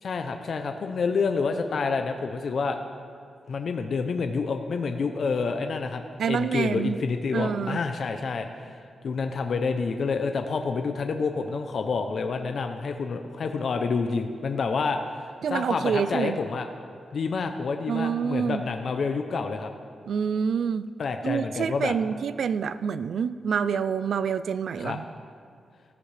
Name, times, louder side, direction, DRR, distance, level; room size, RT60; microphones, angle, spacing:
voice 1, 0.0-2.8 3.5-6.0 6.3-8.8 9.0-16.6 17.1-19.7 21.0-21.9 24.8-25.0, left 4 dB, 55° left, 6 dB, 0.6 m, -28 dB
voice 2, 6.2-7.0 7.3-7.8 15.4-16.4 17.9-18.6 20.1-20.9 21.2-25.0, right 7 dB, 70° right, 14 dB, 0.3 m, -27 dB
15.0 x 13.5 x 3.3 m, 2.3 s
wide cardioid pair, 145°, 0 cm